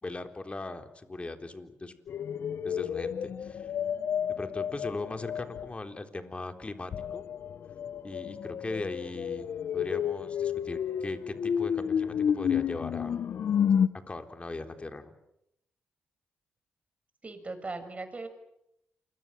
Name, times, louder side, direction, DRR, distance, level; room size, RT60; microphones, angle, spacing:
voice 1, 0.0-2.0 2.6-3.7 4.3-7.2 8.0-13.2 14.1-15.1, left 2 dB, 30° left, 7 dB, 3.7 m, -39 dB
sound 1, 2.1-5.7 6.9-13.9, left 8 dB, 65° left, 1.2 m, -31 dB
voice 2, 17.2-18.3, right 3 dB, 35° right, 9 dB, 6.6 m, -38 dB
28.5 x 23.0 x 7.6 m, 0.81 s
supercardioid pair, 55°, 4 cm